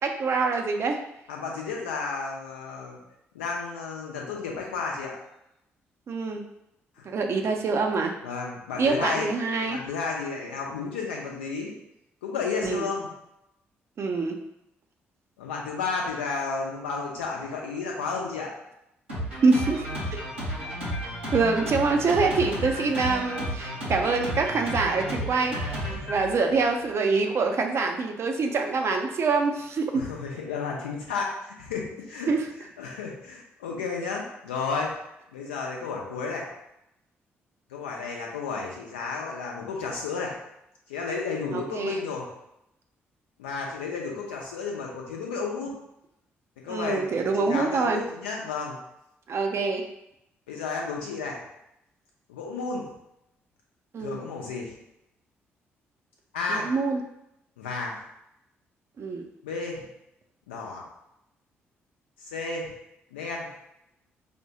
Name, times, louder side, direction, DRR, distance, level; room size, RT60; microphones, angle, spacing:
voice 1, 0.0-1.0 6.1-6.4 7.0-8.1 8.8-9.8 12.6-12.9 14.0-14.4 19.4-19.8 21.3-29.9 32.3-32.5 41.5-42.0 46.7-48.0 49.3-49.8 53.9-54.2 56.5-57.0 59.0-59.3, right 4 dB, 45° right, 3 dB, 0.5 m, -25 dB
voice 2, 1.3-3.0 3.3-5.2 7.0-7.1 8.2-9.3 9.7-11.8 12.2-13.1 15.4-18.5 21.9-22.1 25.9-26.1 29.9-32.3 32.8-34.9 35.3-36.5 37.7-40.3 40.9-42.3 43.4-45.7 46.6-48.8 50.5-51.4 52.3-52.8 54.0-54.7 56.3-56.7 57.6-57.9 59.4-59.8 60.5-60.8 62.3-62.7 63.1-63.5, left 4 dB, 75° left, -1 dB, 0.6 m, -32 dB
Drum kit, 19.1-26.9, equal, 85° right, 0.9 m, -33 dB
5.0 x 2.2 x 2.8 m, 0.83 s
figure-of-eight pair, 40°, 6 cm